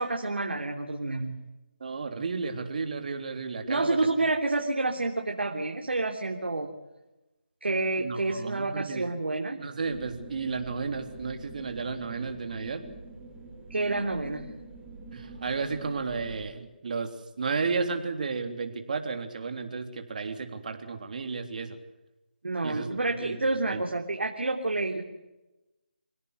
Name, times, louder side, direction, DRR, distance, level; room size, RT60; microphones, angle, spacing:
voice 1, 0.0-1.4 3.7-6.7 7.6-9.6 13.7-14.5 22.4-25.0, right 2 dB, 80° right, 1 dB, 3.4 m, -29 dB
voice 2, 1.8-4.0 8.0-9.1 9.6-12.8 15.1-17.1 17.4-21.8 22.6-23.8, right 4 dB, 45° right, 6 dB, 3.4 m, -33 dB
sound 1, 9.9-16.4, right 2 dB, 5° right, 7.4 m, -46 dB
27.0 x 17.5 x 8.2 m, 1.0 s
figure-of-eight pair, 165°, 6 cm